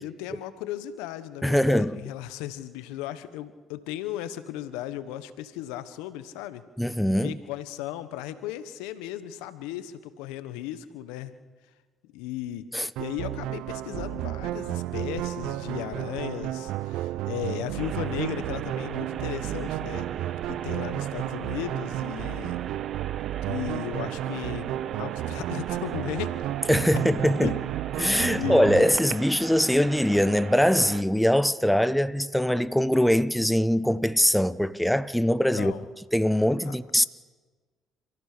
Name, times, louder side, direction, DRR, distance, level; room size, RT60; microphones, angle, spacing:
voice 1, 0.0-6.6 7.1-11.3 12.1-20.1 20.5-22.6 23.5-26.4 27.4-27.5 28.2-28.7 35.6-35.8 36.6-36.8, left 12 dB, 85° left, 1.2 m, -36 dB
voice 2, 1.4-2.0 6.8-7.4 12.7-12.9 26.7-27.6 28.0-35.7 36.1-37.1, equal, 5° left, 0.9 m, -22 dB
sound 1, 13.0-29.0, right 14 dB, 80° right, 0.6 m, -32 dB
sound 2, 17.8-31.0, right 8 dB, 60° right, 1.2 m, -39 dB
29.5 x 15.0 x 6.8 m
supercardioid pair, 65°, 0 cm